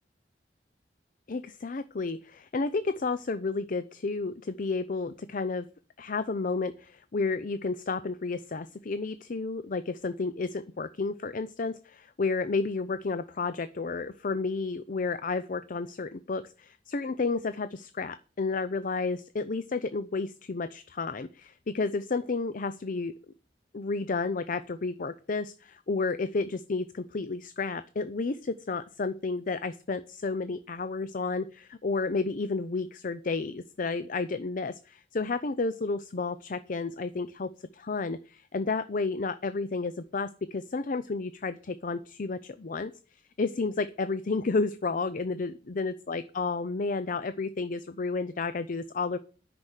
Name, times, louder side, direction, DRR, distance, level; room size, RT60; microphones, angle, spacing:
voice 1, 1.3-5.7 6.0-23.1 23.7-42.9 43.4-49.2, left 3 dB, 50° left, 13 dB, 0.6 m, -31 dB
9.7 x 6.1 x 8.1 m, 0.36 s
head